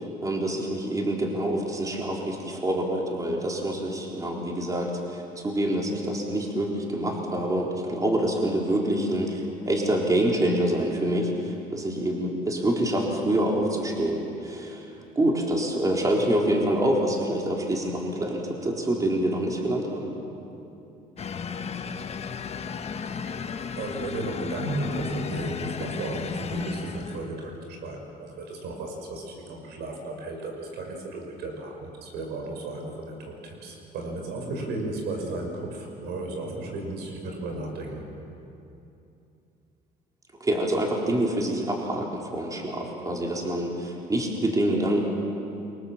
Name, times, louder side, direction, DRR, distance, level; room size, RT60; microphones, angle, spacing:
voice 1, 0.2-14.8 15.2-20.1 40.4-45.0, right 1 dB, 20° right, -1 dB, 4.1 m, -26 dB
sound 1, 21.2-27.5, left 6 dB, 40° left, 1.2 m, -34 dB
voice 2, 23.8-38.1, right 2 dB, 80° right, 2 dB, 6.0 m, -34 dB
28.5 x 23.5 x 7.4 m, 2.8 s
cardioid pair, 110°, 17 cm